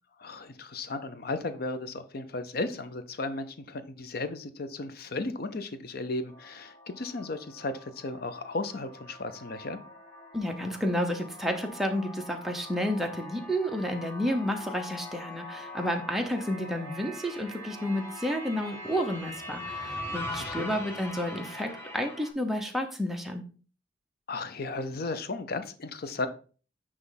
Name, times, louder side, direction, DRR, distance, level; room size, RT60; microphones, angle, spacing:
voice 1, 0.2-9.8 20.3-20.7 24.3-26.3, left 2 dB, 60° left, 10 dB, 0.7 m, -35 dB
sound 1, 6.3-22.3, left 1 dB, 15° left, 1.5 m, -42 dB
voice 2, 10.3-23.4, equal, ahead, 3 dB, 0.9 m, -31 dB
9.4 x 3.2 x 4.0 m, 0.38 s
head